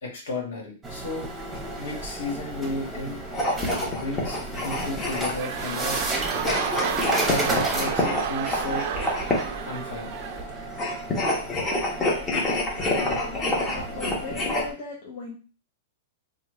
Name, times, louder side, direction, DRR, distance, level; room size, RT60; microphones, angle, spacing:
voice 1, 0.0-1.3 1.8-3.2 3.9-4.4 4.6-6.0 7.3-8.9 9.6-10.2, left 2 dB, 75° left, -1 dB, 1.5 m, -33 dB
sound 1, 0.8-14.7, right 1 dB, 10° right, 0.9 m, -34 dB
sound 2, 3.3-5.6 6.3-9.6 10.7-14.6, left 1 dB, 20° left, 1.1 m, -27 dB
sound 3, 5.0-11.3 12.0-12.1, right 8 dB, 55° right, 0.5 m, -32 dB
voice 2, 12.5-15.4, left 3 dB, 50° left, -2 dB, 0.7 m, -37 dB
3.2 x 2.3 x 3.1 m, 0.36 s
hypercardioid pair, 130°, 0 cm